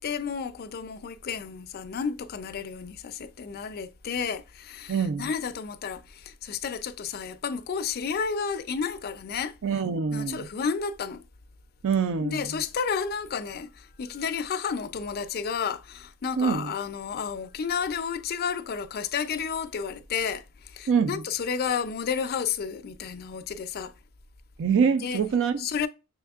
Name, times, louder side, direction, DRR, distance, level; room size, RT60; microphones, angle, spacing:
voice 1, 0.0-9.8 10.1-11.2 12.2-23.9 25.0-25.2 25.6-25.9, left 6 dB, 45° left, 0.4 m, -31 dB
voice 2, 4.9-5.3 9.6-10.5 11.8-12.4 16.4-16.7 20.9-21.2 24.6-25.7, right 6 dB, 60° right, 0.4 m, -25 dB
6.3 x 3.4 x 2.3 m
head